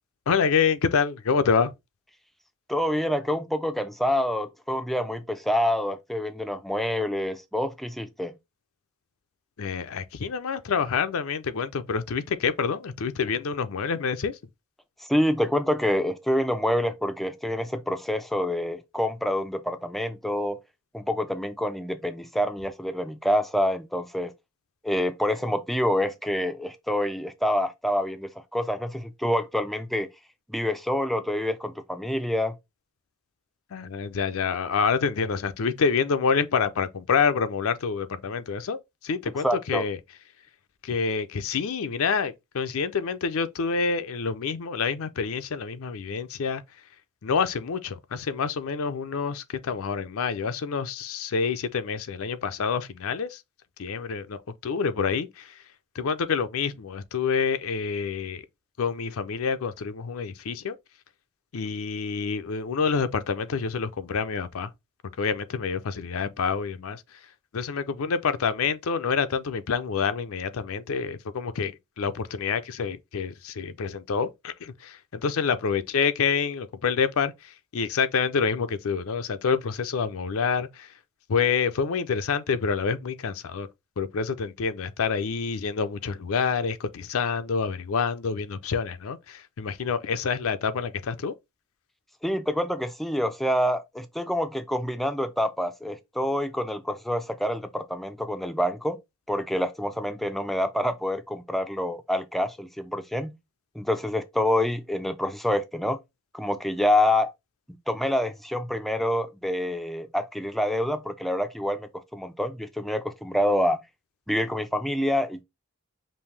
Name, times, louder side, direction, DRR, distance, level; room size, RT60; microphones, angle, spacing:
voice 1, 0.3-1.7 9.6-14.4 33.7-40.0 40.8-46.6 47.2-53.4 53.8-55.5 56.0-58.4 58.8-60.8 61.5-64.7 65.2-67.0 67.5-80.9 81.3-83.7 84.0-91.3, left 5 dB, 70° left, 0.5 m, -27 dB
voice 2, 2.7-8.3 15.0-20.6 20.9-24.3 24.8-30.1 30.5-32.6 39.4-39.8 92.2-99.0 99.3-103.4 103.8-106.0 106.3-107.3 107.9-113.8 114.3-115.4, left 1 dB, ahead, 0.3 m, -27 dB
5.3 x 2.6 x 3.2 m
head